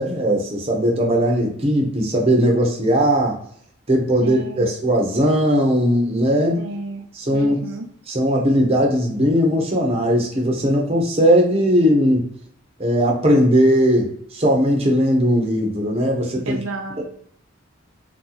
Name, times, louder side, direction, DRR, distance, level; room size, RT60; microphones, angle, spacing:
voice 1, 0.0-3.4 3.9-6.6 7.2-7.6 8.1-12.2 12.8-16.6 17.0-17.1, equal, 30° right, 0 dB, 0.7 m, -18 dB
voice 2, 4.2-4.7 6.6-7.1 7.3-7.9 16.5-17.0, right 2 dB, 85° right, 2 dB, 0.6 m, -31 dB
2.8 x 2.3 x 3.8 m, 0.65 s
head